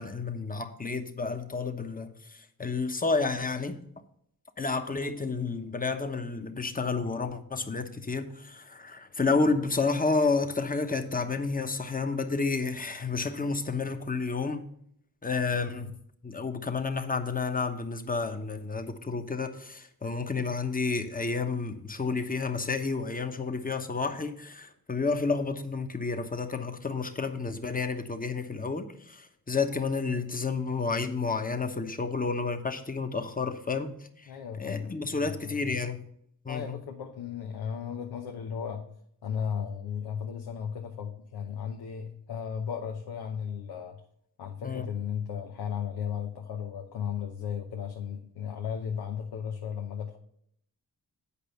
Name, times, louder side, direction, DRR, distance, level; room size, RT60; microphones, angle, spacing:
voice 1, 0.0-3.8 4.6-14.6 15.2-15.9 16.2-34.3 34.6-36.1 36.4-36.8 44.6-44.9, left 4 dB, 20° left, 1.1 m, -30 dB
voice 2, 34.3-35.7 36.5-38.9 39.2-44.0 44.4-50.2, left 7 dB, 90° left, 0.9 m, -35 dB
8.5 x 5.1 x 6.9 m
cardioid pair, 55°, 38 cm